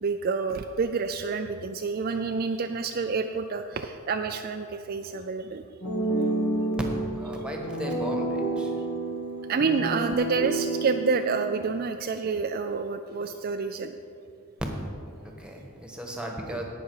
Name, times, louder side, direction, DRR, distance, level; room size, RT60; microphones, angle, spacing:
voice 1, 0.0-5.6 9.5-13.9, right 4 dB, 45° right, 6 dB, 0.4 m, -28 dB
sound 1, 5.8-11.8, right 2 dB, 70° left, 1.9 m, -30 dB
voice 2, 6.8-8.7 15.4-16.6, right 1 dB, 5° right, 1 dB, 1.3 m, -36 dB
18.0 x 6.1 x 4.7 m, 2.4 s
head